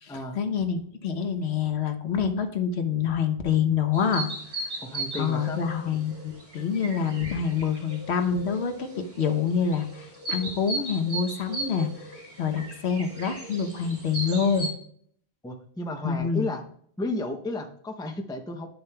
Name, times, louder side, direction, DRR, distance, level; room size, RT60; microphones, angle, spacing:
voice 1, 0.0-4.6 5.2-8.9 9.2-12.1 12.4-14.7 16.0-16.5, left 6 dB, 80° left, 7 dB, 1.1 m, -27 dB
sound 1, 3.9-14.7, right 2 dB, 45° right, 2.4 m, -37 dB
voice 2, 4.8-5.6 15.4-16.6 17.0-18.7, left 1 dB, 5° left, 4 dB, 0.5 m, -33 dB
10.5 x 6.8 x 2.3 m, 0.62 s
omnidirectional pair, 1.1 m